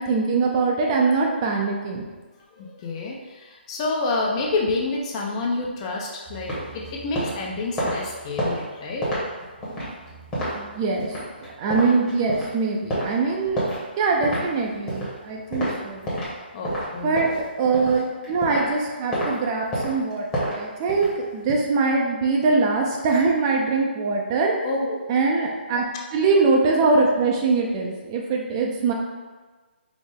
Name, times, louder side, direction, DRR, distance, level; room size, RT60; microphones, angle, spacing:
voice 1, 0.0-2.0 10.5-11.1 11.6-13.6 14.0-16.1 17.0-17.3 17.6-24.5 25.1-25.8 26.1-28.9, right 4 dB, 25° right, 0 dB, 0.4 m, -22 dB
voice 2, 2.6-9.1 16.5-17.2 24.6-25.0, left 3 dB, 30° left, -1 dB, 0.5 m, -28 dB
sound 1, 6.3-16.4 16.6-18.8 19.1-19.3 19.7-21.5, equal, 15° left, 1.0 m, -30 dB
4.8 x 2.0 x 3.5 m, 1.3 s
figure-of-eight pair, 145°, 6 cm